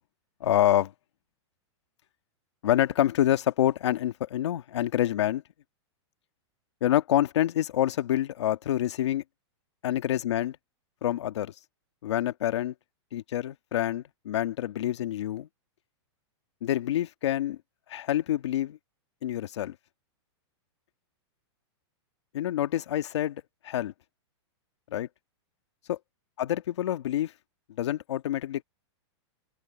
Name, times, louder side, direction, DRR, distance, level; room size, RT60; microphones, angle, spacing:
voice 1, 0.4-0.9 2.6-5.4 6.8-9.2 9.8-10.6 11.0-11.5 12.0-12.7 13.1-15.5 16.6-17.6 17.9-18.8 19.2-19.7 22.3-23.9 24.9-25.1 25.9-26.0 26.4-27.3 27.8-28.6, left 12 dB, 75° left, 1.7 m, -27 dB
open air
supercardioid pair, 160°, 15 cm